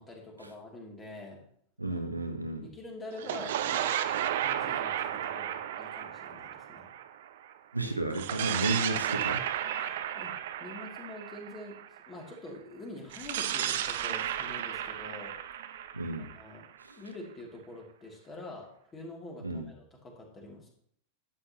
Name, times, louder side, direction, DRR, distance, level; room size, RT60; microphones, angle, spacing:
voice 1, 0.0-1.4 1.9-2.0 2.5-3.9 4.4-6.9 9.8-10.3 10.6-15.4 16.2-16.7 17.0-20.7, left 2 dB, 20° left, -1 dB, 2.8 m, -46 dB
voice 2, 1.8-2.7 7.7-9.4 15.9-16.3 16.8-17.0 19.4-19.7, right 2 dB, 85° right, 5 dB, 1.1 m, -32 dB
sound 1, 3.1-7.5 8.1-12.1 13.1-16.9, right 10 dB, 55° right, 0.7 m, -33 dB
11.5 x 8.7 x 3.0 m, 0.66 s
figure-of-eight pair, 90°, 0 cm